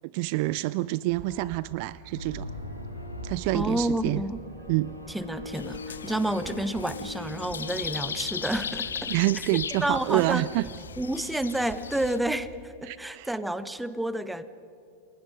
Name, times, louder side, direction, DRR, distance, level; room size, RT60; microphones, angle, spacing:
voice 1, 0.1-2.5 3.2-4.2 4.7-4.9 9.1-10.7 12.9-13.3, right 18 dB, 45° right, 19 dB, 0.4 m, -27 dB
sound 1, 1.1-12.7, right 6 dB, 25° right, 1.3 m, -48 dB
sound 2, 2.1-8.4, left 2 dB, 85° left, 3.4 m, -41 dB
voice 2, 3.5-4.4 5.1-9.1 9.8-10.4 11.0-14.4, right 1 dB, 5° right, 13 dB, 1.0 m, -30 dB
sound 3, 5.5-12.2, left 7 dB, 70° left, 0.4 m, -37 dB
29.0 x 22.0 x 5.1 m, 2.7 s
figure-of-eight pair, 90°, 0 cm